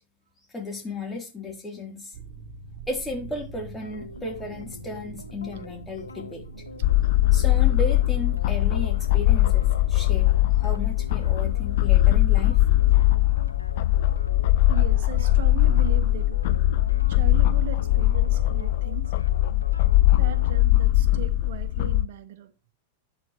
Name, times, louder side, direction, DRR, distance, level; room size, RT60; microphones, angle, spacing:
voice 1, 0.5-2.1 2.9-6.4 7.3-10.3 10.6-12.6, left 2 dB, 10° left, 3.4 m, -34 dB
sound 1, 2.1-15.0, right 4 dB, 45° right, 3.9 m, -44 dB
sound 2, 3.8-20.6, left 3 dB, 90° left, 0.7 m, -43 dB
sound 3, 6.8-22.1, left 15 dB, 60° left, 0.5 m, -21 dB
voice 2, 14.7-16.4 17.1-19.1 20.2-22.5, right 10 dB, 60° right, 1.3 m, -38 dB
11.0 x 8.7 x 3.1 m
figure-of-eight pair, 95°, 0 cm